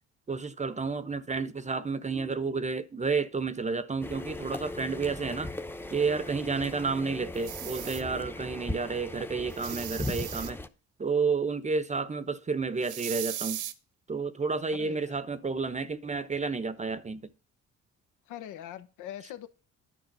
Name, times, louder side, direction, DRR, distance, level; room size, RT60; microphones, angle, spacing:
voice 1, 0.3-5.5 5.9-10.6 11.0-13.6 14.1-17.3, right 4 dB, 25° right, 0.7 m, -31 dB
sound 1, 4.0-10.7, left 2 dB, 5° left, 0.8 m, -38 dB
sound 2, 7.3-8.0 9.5-10.5 12.8-13.7, right 12 dB, 80° right, 1.1 m, -37 dB
voice 2, 14.7-15.2 18.3-19.5, left 11 dB, 90° left, 1.1 m, -42 dB
10.5 x 6.2 x 5.3 m
cardioid pair, 100°, 30 cm